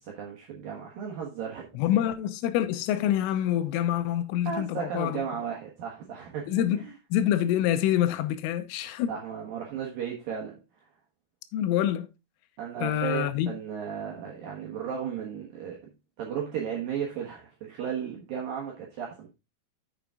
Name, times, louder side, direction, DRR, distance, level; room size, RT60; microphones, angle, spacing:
voice 1, 0.0-1.7 4.5-6.9 9.1-10.6 12.6-15.8 16.2-19.3, right 8 dB, 75° right, 2.1 m, -35 dB
voice 2, 1.8-5.4 6.5-6.8 7.1-9.1 11.5-12.1 12.8-13.6, left 11 dB, 85° left, 3.2 m, -26 dB
7.0 x 6.7 x 3.6 m
omnidirectional pair, 5.9 m